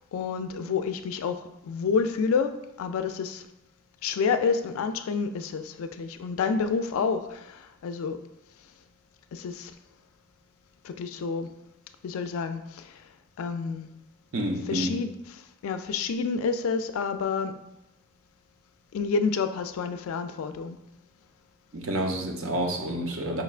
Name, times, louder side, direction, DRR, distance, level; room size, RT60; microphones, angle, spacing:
voice 1, 0.1-3.4 4.0-8.2 9.3-9.7 10.8-11.5 12.0-13.0 13.4-13.9 14.7-15.1 15.6-17.5 18.9-20.8, left 5 dB, 75° left, 9 dB, 0.3 m, -29 dB
voice 2, 14.3-15.0 21.7-23.4, right 1 dB, 65° right, 2 dB, 0.6 m, -29 dB
5.0 x 3.2 x 2.4 m, 0.88 s
head